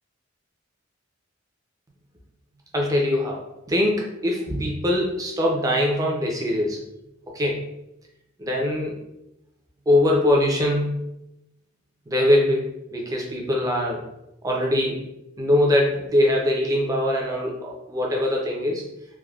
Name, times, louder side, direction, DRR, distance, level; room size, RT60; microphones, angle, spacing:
voice 1, 2.7-6.8 7.3-7.7 8.4-8.9 9.9-11.0 12.1-14.0 14.4-15.0 15.4-18.8, left 1 dB, 20° right, -1 dB, 0.5 m, -22 dB
3.3 x 2.1 x 2.3 m, 0.87 s
head